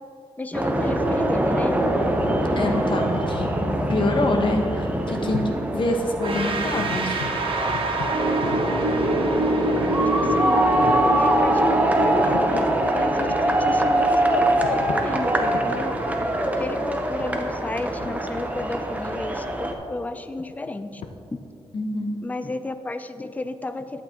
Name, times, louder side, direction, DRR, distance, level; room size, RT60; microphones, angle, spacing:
voice 1, 0.4-1.7 8.7-8.8 9.4-9.8 10.2-10.6 10.9-15.9 16.4-21.0 21.3-21.4 22.2-24.0, left 2 dB, 15° left, 10 dB, 0.4 m, -33 dB
sound 1, 0.5-19.7, right 1 dB, 15° right, 0.7 m, -24 dB
voice 2, 2.6-3.5 3.9-7.3 21.7-22.2, left 2 dB, 50° left, 2 dB, 1.1 m, -25 dB
sound 2, 5.3-5.7 6.0-6.1 6.5-9.7 10.2-10.3 10.7-11.1 12.0-12.6 13.1-13.6 14.4-15.1 15.5-15.8 16.3-19.4 19.7-21.1, left 6 dB, 90° left, 0.6 m, -38 dB
sound 3, 6.2-17.1, right 2 dB, 55° right, 1.1 m, -27 dB
11.5 x 8.2 x 2.9 m, 2.8 s
wide cardioid pair, 120°, 11 cm